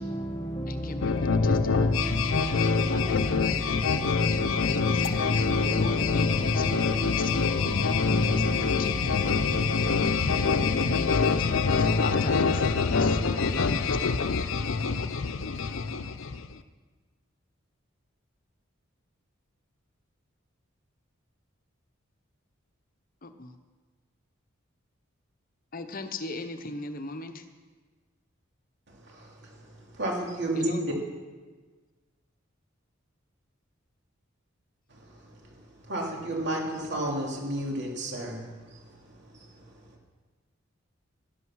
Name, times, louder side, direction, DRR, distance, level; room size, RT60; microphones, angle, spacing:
voice 1, 0.0-10.5, equal, 25° left, 0 dB, 1.1 m, -35 dB
voice 2, 0.7-2.2 2.5-7.6 8.2-9.1 10.3-14.3 23.2-23.6 25.7-27.5 30.5-30.9, left 3 dB, 45° left, 9 dB, 0.8 m, -39 dB
sound 1, 1.0-16.5, left 4 dB, 75° left, 0.6 m, -25 dB
voice 3, 28.9-30.7 34.9-39.9, right 1 dB, 60° right, 0 dB, 2.9 m, -33 dB
12.0 x 11.5 x 6.3 m, 1.4 s
head